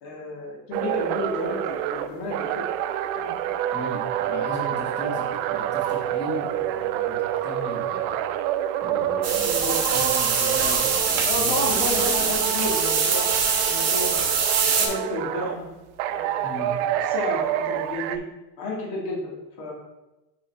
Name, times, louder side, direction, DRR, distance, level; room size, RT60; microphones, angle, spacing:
voice 1, 0.0-2.6 3.1-3.4 4.2-4.6 9.4-9.9 11.3-13.3 13.6-14.1 14.6-15.7 16.1-18.2 18.6-19.7, left 1 dB, 70° left, -3 dB, 2.0 m, -31 dB
sound 1, 0.7-11.3 11.6-15.6 16.0-18.2, right 11 dB, 75° right, 0.5 m, -28 dB
voice 2, 3.7-8.2 8.8-11.8 16.4-16.7, left 1 dB, 25° left, -3 dB, 1.7 m, -37 dB
sound 2, 9.2-14.9, right 5 dB, 40° right, 1.4 m, -23 dB
5.4 x 5.4 x 3.4 m, 1.0 s
supercardioid pair, 115°, 40 cm